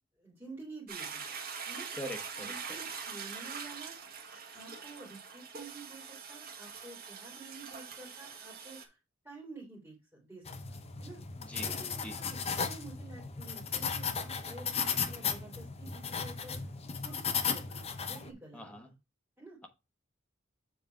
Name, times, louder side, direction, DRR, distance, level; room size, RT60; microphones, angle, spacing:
voice 1, 0.2-1.3 1.6-1.9 2.4-4.0 4.5-9.0 9.2-10.4 10.7-11.2 11.7-16.6 17.0-18.8 19.4-19.6, right 3 dB, 10° right, -4 dB, 3.0 m, -50 dB
Toilet flush, 0.9-8.8, right 6 dB, 50° right, 1.3 m, -43 dB
voice 2, 1.9-2.6 11.4-11.7 12.0-12.2 18.5-18.9, equal, 5° left, 3 dB, 1.0 m, -42 dB
sound 1, 10.4-18.3, left 6 dB, 30° left, 0.7 m, -36 dB
7.3 x 4.2 x 4.5 m, 0.25 s
head